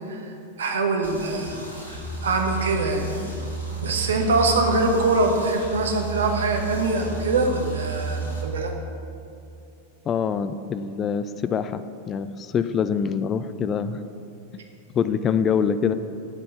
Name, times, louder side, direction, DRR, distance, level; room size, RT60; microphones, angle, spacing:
voice 1, 0.6-1.6 2.2-3.1 3.8-8.7, right 2 dB, 65° right, 3 dB, 1.1 m, -23 dB
sound 1, 1.0-8.4, right 5 dB, 85° right, 1.7 m, -32 dB
voice 2, 10.1-14.0 15.0-15.9, left 7 dB, 25° left, 12 dB, 0.3 m, -25 dB
8.2 x 5.4 x 6.7 m, 2.6 s
figure-of-eight pair, 90°, 0 cm